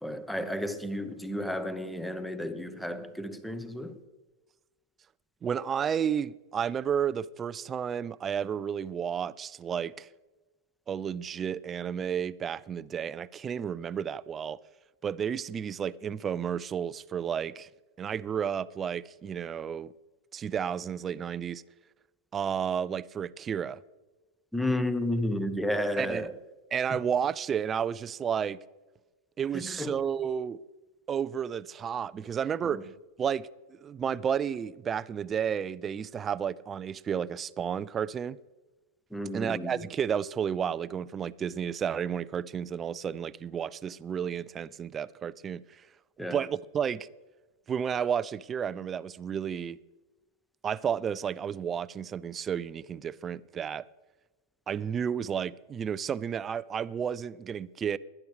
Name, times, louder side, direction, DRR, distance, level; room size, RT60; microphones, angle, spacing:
voice 1, 0.0-4.0 24.5-26.4 26.9-27.0 29.5-30.0 32.6-32.8 39.1-39.9 46.2-46.4, left 1 dB, 5° left, 0.9 m, -32 dB
voice 2, 5.4-10.1 10.9-14.6 15.0-17.7 18.0-19.9 20.3-21.6 22.3-23.8 26.0-26.3 26.7-28.6 29.4-30.6 31.1-32.8 33.2-38.4 39.3-45.8 46.3-47.1 47.7-49.8 50.6-53.8 54.7-58.0, right 8 dB, 25° right, 0.3 m, -32 dB
19.0 x 10.5 x 3.3 m
figure-of-eight pair, 90°, 0 cm